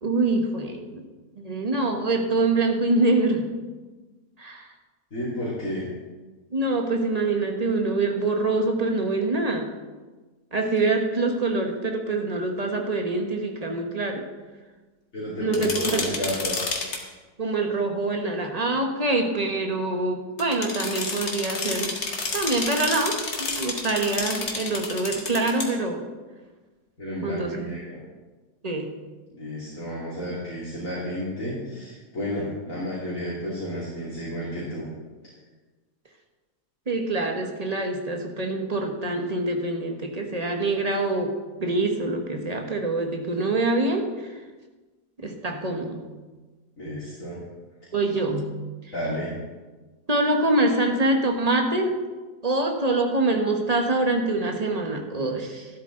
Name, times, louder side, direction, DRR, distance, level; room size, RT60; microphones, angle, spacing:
voice 1, 0.0-1.0 1.4-3.5 4.4-4.7 6.5-9.7 10.5-14.3 15.4-16.0 17.4-22.0 22.3-26.0 27.2-27.5 28.6-28.9 36.9-44.3 45.2-46.0 47.9-48.6 50.1-52.0 52.4-55.7, right 2 dB, 25° right, 3 dB, 1.4 m, -25 dB
voice 2, 5.1-5.9 15.1-16.7 27.0-28.0 29.3-34.8 46.8-47.4 48.9-49.3, equal, 55° left, -8 dB, 3.2 m, -32 dB
sound 1, 15.5-17.0 20.4-25.7, left 3 dB, 70° left, 2.2 m, -30 dB
13.5 x 12.0 x 3.9 m, 1.3 s
omnidirectional pair, 1.6 m